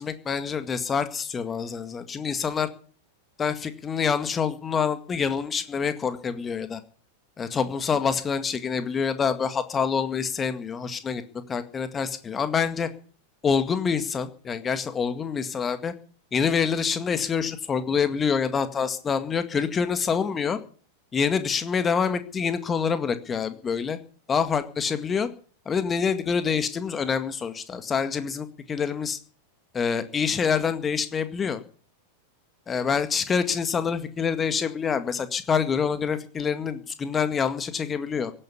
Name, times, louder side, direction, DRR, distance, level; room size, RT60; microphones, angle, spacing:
voice 1, 0.0-2.7 3.4-6.8 7.4-11.2 11.5-12.9 13.4-15.9 16.3-20.6 21.1-24.0 24.3-25.3 25.7-29.2 29.7-31.6 32.7-38.3, left 6 dB, 20° left, 10 dB, 2.0 m, -26 dB
17.0 x 9.8 x 8.5 m, 0.44 s
figure-of-eight pair, 90°, 0 cm